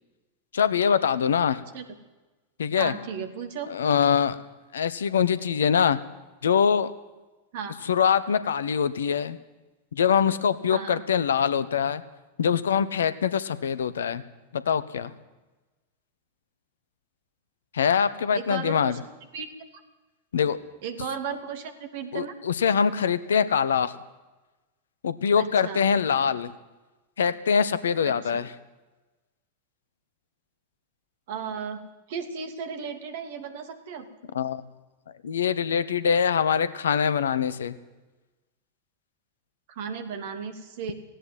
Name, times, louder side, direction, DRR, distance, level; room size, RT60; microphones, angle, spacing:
voice 1, 0.5-1.6 2.6-2.9 3.7-4.4 4.7-6.0 6.4-6.9 7.8-9.4 9.9-12.0 12.4-14.2 14.5-15.1 17.7-18.9 20.3-20.6 22.1-23.9 25.0-26.5 27.2-28.5 34.3-34.6 35.2-37.8, left 7 dB, 65° left, 15 dB, 1.1 m, -23 dB
voice 2, 2.8-3.7 7.5-7.7 10.7-11.0 18.3-19.0 19.3-19.7 20.8-22.3 25.4-25.9 28.0-28.5 31.3-31.8 32.1-34.1 39.7-40.9, right 6 dB, 50° right, 8 dB, 2.7 m, -35 dB
18.0 x 16.5 x 9.6 m, 1.1 s
figure-of-eight pair, 90°, 0 cm